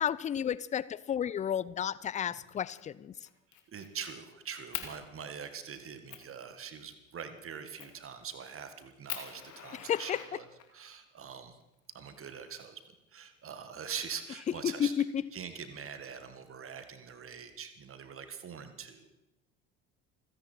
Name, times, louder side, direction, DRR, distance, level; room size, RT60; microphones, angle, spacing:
voice 1, 0.0-3.1 9.7-10.2 14.6-15.2, left 9 dB, 20° left, 20 dB, 0.5 m, -32 dB
Fire, 2.5-2.8 3.2-4.1 4.7-4.9 5.5-5.6 6.1-6.3 7.8-8.1 8.5-8.6 9.1-10.9 11.9-12.9, left 10 dB, 45° left, 2.4 m, -43 dB
voice 2, 3.7-10.4 10.7-11.6 11.9-12.8 13.1-14.9 15.3-19.1, right 7 dB, 35° right, 9 dB, 1.8 m, -43 dB
28.5 x 10.5 x 4.5 m, 0.95 s
figure-of-eight pair, 65°, 40 cm